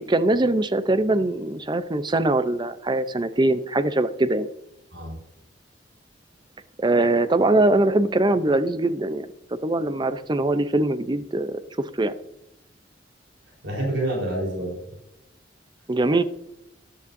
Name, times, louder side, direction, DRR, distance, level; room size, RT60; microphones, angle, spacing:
voice 1, 0.0-4.5 6.8-9.3 9.6-11.6 12.0-12.1 15.9-16.2, right 2 dB, 25° right, 12 dB, 0.6 m, -22 dB
voice 2, 13.6-14.8, right 1 dB, 80° right, -2 dB, 4.2 m, -27 dB
14.0 x 11.0 x 2.7 m, 0.84 s
head